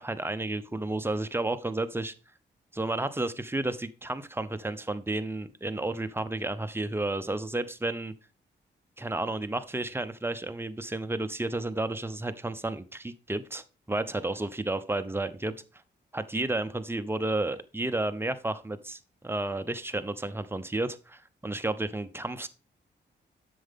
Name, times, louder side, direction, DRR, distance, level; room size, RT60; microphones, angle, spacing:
voice 1, 0.0-2.1 2.7-8.1 9.0-15.5 16.1-22.5, right 2 dB, 10° right, 10 dB, 0.8 m, -32 dB
7.7 x 6.6 x 3.6 m, 0.32 s
cardioid pair, 75°, 19 cm